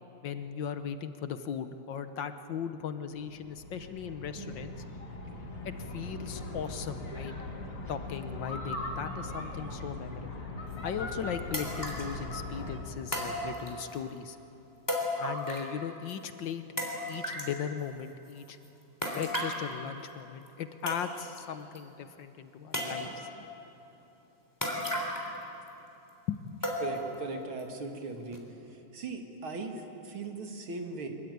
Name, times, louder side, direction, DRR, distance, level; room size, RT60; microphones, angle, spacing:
voice 1, 0.2-4.7 5.6-7.3 7.9-10.4 10.8-14.4 15.2-16.6 17.1-18.6 19.2-23.5 26.3-26.6, left 8 dB, 65° left, 10 dB, 1.5 m, -38 dB
sound 1, 3.1-12.8, left 2 dB, 85° left, 4.2 m, -40 dB
sound 2, 10.7-10.8 11.5-12.1 13.1-14.0 14.9-15.8 16.1-16.2 16.8-17.6 19.0-19.7 20.5-20.6 20.9-21.4 21.8-21.9 22.7-23.3 24.6-25.4 25.7-25.8 26.6-27.2 27.6-27.7 28.3-28.4, equal, 10° left, 3.4 m, -34 dB
voice 2, 26.8-28.4 28.7-31.1, right 3 dB, 70° right, 4 dB, 2.9 m, -39 dB
23.5 x 22.5 x 9.4 m, 3.0 s
omnidirectional pair, 2.4 m